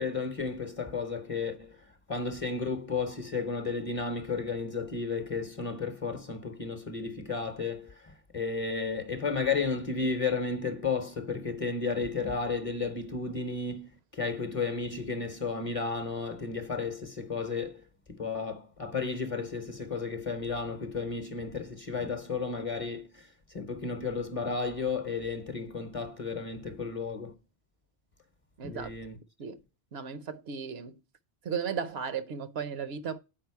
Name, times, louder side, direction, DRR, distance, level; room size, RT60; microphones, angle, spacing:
voice 1, 0.0-1.8 2.1-17.8 18.1-27.3 28.6-29.2, left 4 dB, 35° left, 0.8 m, -33 dB
voice 2, 28.6-28.9 29.4-29.6 29.9-30.9 31.4-33.2, right 6 dB, 70° right, 0.9 m, -35 dB
7.3 x 4.9 x 4.6 m
omnidirectional pair, 1.1 m